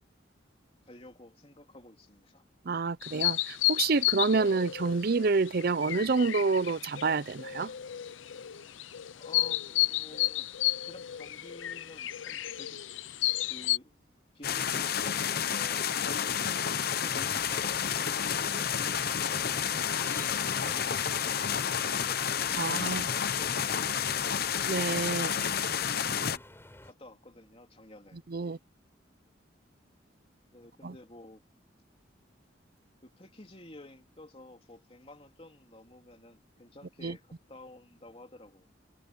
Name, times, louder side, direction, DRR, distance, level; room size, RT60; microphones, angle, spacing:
voice 1, 0.9-2.5 9.1-10.5 10.9-12.8 13.5-14.0 14.3-15.9 16.7-19.7 20.4-21.4 21.9-24.5 26.8-28.3 30.5-31.4 33.0-38.7, left 1 dB, 30° left, 3.1 m, -52 dB
voice 2, 2.7-7.7 22.6-23.1 24.7-25.3 28.3-28.6 30.8-30.9 37.0-37.1, right 4 dB, 55° right, 0.6 m, -28 dB
sound 1, 3.0-13.8, left 16 dB, 90° left, 0.6 m, -32 dB
sound 2, 14.4-26.4, left 8 dB, 55° left, 0.8 m, -30 dB
sound 3, 17.1-26.9, left 1 dB, 15° left, 3.9 m, -51 dB
head